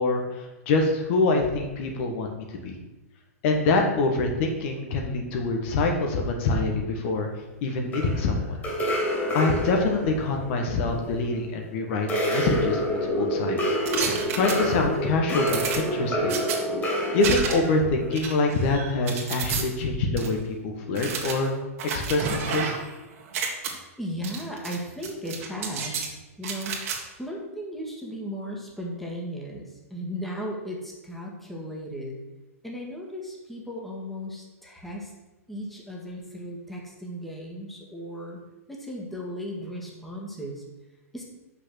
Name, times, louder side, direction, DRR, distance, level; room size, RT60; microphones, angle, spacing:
voice 1, 0.0-2.8 3.4-7.3 7.6-8.6 9.3-13.6 14.3-16.3 17.1-20.4 20.6-21.5 21.8-22.7, left 3 dB, 50° left, 2 dB, 1.4 m, -25 dB
sound 1, 7.9-11.5 12.1-18.1, equal, 20° left, 2.8 m, -28 dB
sound 2, 13.9-15.0 15.5-16.6 17.2-17.8 18.1-19.6 20.2-20.3 20.9-22.9 23.2-23.7 24.2-24.8 25.0-26.1 26.4-27.0, right 6 dB, 60° right, 1.8 m, -31 dB
voice 2, 24.0-26.8 27.1-32.2 32.6-35.1 35.5-38.4 38.7-40.6 41.1-41.2, equal, ahead, -2 dB, 1.8 m, -36 dB
6.1 x 5.8 x 6.3 m, 1.1 s
hypercardioid pair, 120°, 8 cm